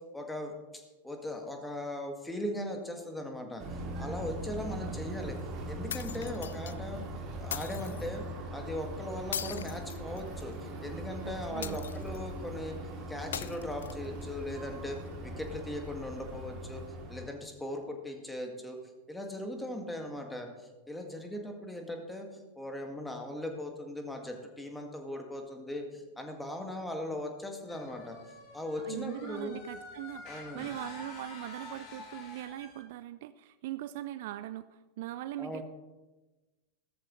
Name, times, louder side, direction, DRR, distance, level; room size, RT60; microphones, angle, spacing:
voice 1, 0.1-3.6 4.0-5.4 5.7-7.0 7.4-8.2 8.5-10.5 10.8-12.8 13.1-16.8 17.1-18.8 19.1-20.5 20.9-28.2 28.5-29.5 30.2-30.7 35.4-35.6, left 1 dB, 5° left, 3 dB, 1.9 m, -39 dB
sound 1, 3.6-17.3, right 1 dB, 35° right, 2.9 m, -40 dB
sound 2, 5.9-6.8 7.5-8.1 9.3-10.5 11.6-12.3 13.3-14.3, left 9 dB, 65° left, 0.4 m, -40 dB
voice 2, 11.2-11.8 28.8-35.6, right 14 dB, 50° right, 14 dB, 0.4 m, -41 dB
sound 3, 27.7-32.8, left 3 dB, 40° left, 3.3 m, -48 dB
15.0 x 13.5 x 3.2 m, 1.2 s
figure-of-eight pair, 90°, 0 cm